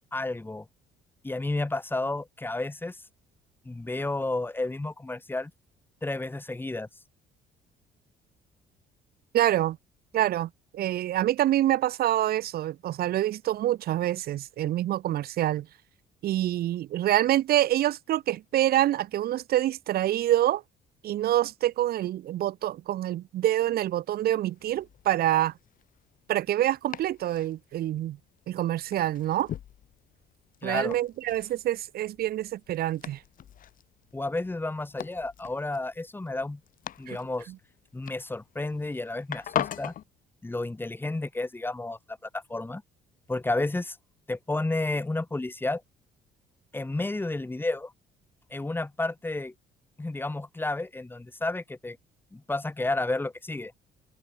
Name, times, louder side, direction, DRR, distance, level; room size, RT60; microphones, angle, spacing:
voice 1, 0.1-0.7 1.2-3.0 3.7-5.5 6.0-6.9 30.6-31.0 34.1-36.6 37.0-37.5 37.9-39.9 40.4-42.8 43.3-44.0 44.3-45.8 46.7-47.9 48.5-49.5 50.0-52.0 52.3-53.7, left 2 dB, 10° left, 3.7 m, -31 dB
voice 2, 9.3-9.8 10.1-15.7 16.2-20.6 21.0-25.5 26.3-28.2 28.5-29.5 30.6-33.2 37.1-37.2 37.5-37.6, right 13 dB, 65° right, 1.7 m, -26 dB
Domestic sounds home sounds, 24.5-40.0, left 10 dB, 55° left, 2.1 m, -41 dB
cardioid pair, 110°, 17 cm